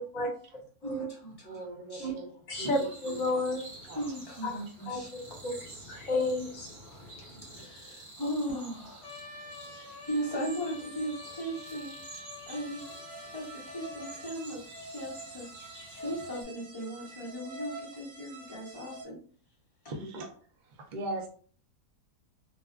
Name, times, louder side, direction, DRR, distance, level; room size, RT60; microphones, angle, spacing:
voice 1, 0.8-2.1 3.9-5.1 7.5-9.1 9.3-11.9 12.5-12.9 13.3-15.5 15.9-19.2 19.8-19.9, equal, 20° left, -5 dB, 0.7 m, -38 dB
voice 2, 1.5-2.3 2.6-2.7 3.1-3.4 3.9-4.0 19.9-20.3 20.9-21.3, right 2 dB, 75° right, 1 dB, 0.4 m, -38 dB
voice 3, 2.5-3.6 4.9-7.6, left 2 dB, 65° left, 0 dB, 1.2 m, -33 dB
sound 1, 2.6-16.4, right 2 dB, 55° right, 1.1 m, -50 dB
Trumpet, 9.0-14.3, left 3 dB, 80° left, 1.1 m, -48 dB
sound 2, 12.4-19.0, right 2 dB, 40° right, 0.8 m, -46 dB
2.7 x 2.2 x 2.3 m, 0.44 s
omnidirectional pair, 1.6 m